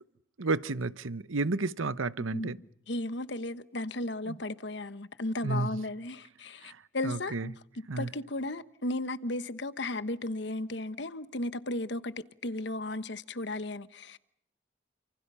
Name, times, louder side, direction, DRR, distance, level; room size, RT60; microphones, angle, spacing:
voice 1, 0.4-2.6 4.3-4.4 5.4-5.8 6.6-7.5 7.9-8.1, right 3 dB, 85° right, 0.9 m, -32 dB
voice 2, 2.9-7.5 8.0-12.1 12.4-14.2, left 2 dB, 60° left, 1.2 m, -35 dB
29.0 x 26.5 x 5.6 m
head